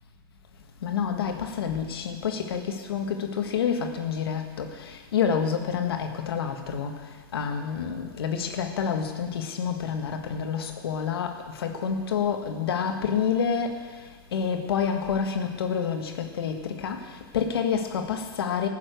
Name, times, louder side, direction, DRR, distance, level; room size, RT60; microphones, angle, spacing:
voice 1, 0.8-18.7, left 7 dB, 80° left, 5 dB, 1.7 m, -28 dB
14.5 x 7.2 x 8.2 m, 1.5 s
hypercardioid pair, 115°, 13 cm